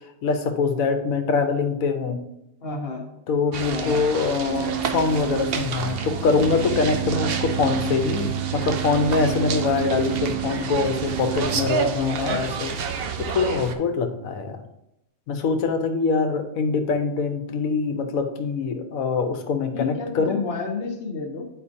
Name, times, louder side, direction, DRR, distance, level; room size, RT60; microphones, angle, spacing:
voice 1, 0.2-2.2 3.3-12.7 13.2-14.6 15.3-20.4, left 4 dB, 80° left, 7 dB, 1.2 m, -24 dB
voice 2, 2.6-3.0 3.7-4.0 11.7-12.4 19.7-21.5, left 3 dB, 50° left, 1 dB, 1.3 m, -30 dB
sound 1, 3.5-13.7, right 6 dB, 60° right, 0.7 m, -30 dB
sound 2, 4.5-11.7, right 10 dB, 80° right, 1.1 m, -30 dB
9.8 x 4.4 x 2.6 m, 0.83 s
omnidirectional pair, 1.4 m